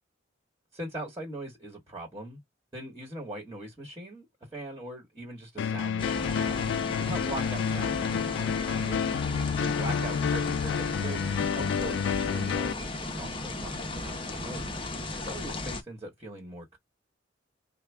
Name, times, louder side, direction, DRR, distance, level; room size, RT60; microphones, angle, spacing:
voice 1, 0.7-2.4 2.7-6.6 7.0-9.0 9.6-14.8 15.2-16.8, right 1 dB, 15° right, 1.5 m, -41 dB
sound 1, 5.6-12.7, left 7 dB, 65° left, 0.3 m, -29 dB
sound 2, 6.0-15.8, left 2 dB, 30° left, 0.8 m, -35 dB
4.9 x 2.2 x 3.5 m
head